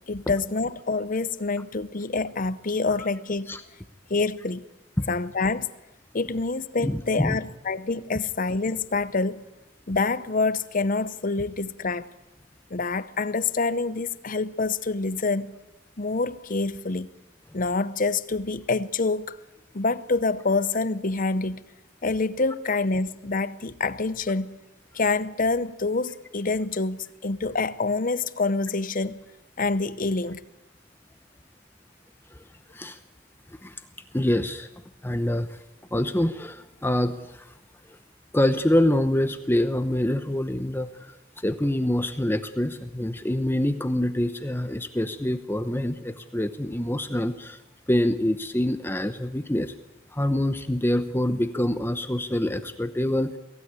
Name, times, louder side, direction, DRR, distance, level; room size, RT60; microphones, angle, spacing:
voice 1, 0.1-3.5 4.1-4.6 5.1-5.7 6.1-9.4 9.9-12.1 12.7-15.5 16.0-17.1 17.5-19.4 19.7-21.6 22.0-24.5 24.9-29.2 29.6-30.4, left 3 dB, 40° left, 15 dB, 0.8 m, -26 dB
voice 2, 6.8-7.4 32.7-33.0 33.6-33.8 34.1-34.7 35.0-35.6 35.9-37.5 38.3-41.2 41.4-47.6 47.9-49.7 50.1-53.3, left 1 dB, 10° left, 10 dB, 0.8 m, -25 dB
22.5 x 16.5 x 9.7 m, 0.95 s
head